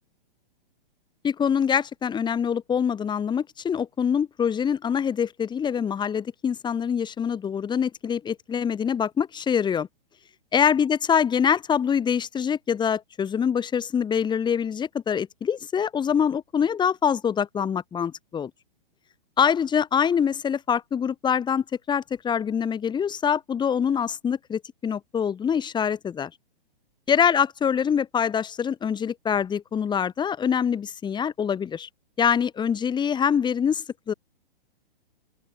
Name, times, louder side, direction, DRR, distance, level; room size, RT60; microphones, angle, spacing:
voice 1, 1.2-9.9 10.5-18.5 19.4-26.3 27.1-31.9 32.2-34.1, left 7 dB, 15° left, 5.8 m, -24 dB
open air
hypercardioid pair, 135°, 29 cm